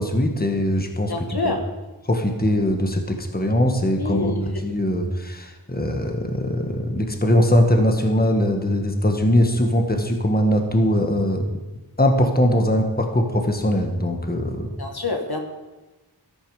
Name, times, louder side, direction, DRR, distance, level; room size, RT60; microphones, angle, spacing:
voice 1, 0.0-1.1 1.4-1.5 2.1-11.5 12.0-14.7, left 1 dB, 20° left, 4 dB, 1.7 m, -21 dB
voice 2, 1.1-1.6 4.0-4.4 14.8-15.4, left 3 dB, 60° left, 4 dB, 1.7 m, -26 dB
13.0 x 11.5 x 5.1 m, 1.1 s
wide cardioid pair, 65°, 42 cm